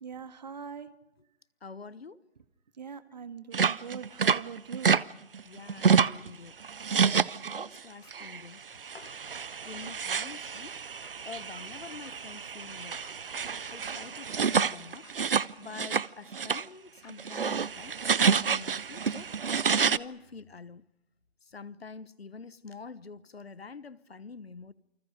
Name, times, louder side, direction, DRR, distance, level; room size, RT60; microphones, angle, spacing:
voice 1, 0.0-0.9 2.8-4.9, right 7 dB, 40° right, 1.9 m, -42 dB
voice 2, 1.6-2.2 5.4-6.5 7.5-9.1 9.6-10.7 11.2-13.0 13.6-15.1 15.6-17.9 18.4-19.3 19.7-20.8 21.5-24.7, left 5 dB, 65° left, 1.3 m, -46 dB
sound 1, 3.5-5.0 5.3-6.3 6.6-7.8 8.1-8.4 8.8-16.1 16.3-16.7 17.1-20.0, right 6 dB, 60° right, 0.8 m, -28 dB
sound 2, 7.0-7.1 8.0-8.1 9.0-9.1 10.0-10.1 11.0-11.1 12.0-12.1 13.0-13.1 14.0-14.1 15.0-15.1 16.0-16.1 17.0-17.1 18.0-18.1 19.0-19.1, left 8 dB, 35° left, 2.6 m, -57 dB
28.0 x 26.0 x 5.1 m
figure-of-eight pair, 150°, 32 cm